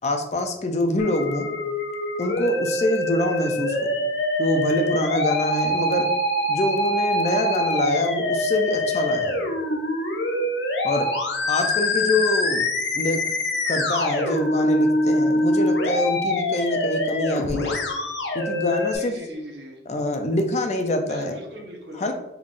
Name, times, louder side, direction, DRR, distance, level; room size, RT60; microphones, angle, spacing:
voice 1, 0.0-1.5 2.2-3.9 4.4-6.1 6.5-9.4 10.8-11.1 11.5-12.6 12.9-13.2 13.7-17.8 18.3-19.1 19.9-21.4 21.9-22.1, left 1 dB, 40° left, 5 dB, 0.4 m, -25 dB
Musical instrument, 1.0-19.0, left 1 dB, 85° left, 0.6 m, -24 dB
voice 2, 18.9-19.8 21.0-22.1, equal, 75° right, 0 dB, 0.9 m, -39 dB
3.6 x 3.5 x 2.4 m, 0.92 s
head